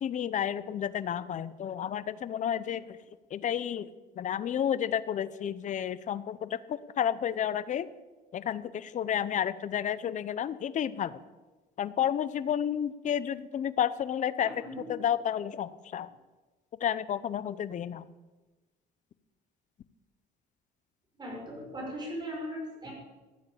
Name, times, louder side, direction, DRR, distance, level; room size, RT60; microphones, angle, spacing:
voice 1, 0.0-2.8 3.3-3.9 4.2-6.6 7.0-7.9 8.3-11.1 11.8-14.5 14.9-16.1 16.8-18.0, left 9 dB, 45° left, 16 dB, 0.8 m, -31 dB
voice 2, 14.4-14.9 21.2-22.9, equal, 25° right, -1 dB, 6.0 m, -38 dB
14.5 x 9.4 x 8.7 m, 1.2 s
cardioid pair, 110°, 17 cm